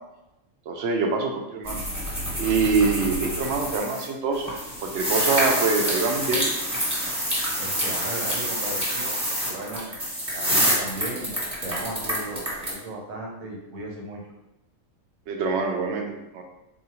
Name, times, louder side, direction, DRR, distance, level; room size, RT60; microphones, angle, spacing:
voice 1, 0.7-1.8 2.4-4.5 4.8-6.5 15.3-16.4, right 4 dB, 65° right, 3 dB, 0.8 m, -25 dB
sound 1, 1.6-4.0 4.3-12.7, equal, 15° right, 1.1 m, -27 dB
voice 2, 7.6-10.0 10.3-11.3 11.6-14.2, right 2 dB, 80° right, -1 dB, 1.3 m, -36 dB
4.1 x 2.7 x 2.9 m, 0.94 s
omnidirectional pair, 1.4 m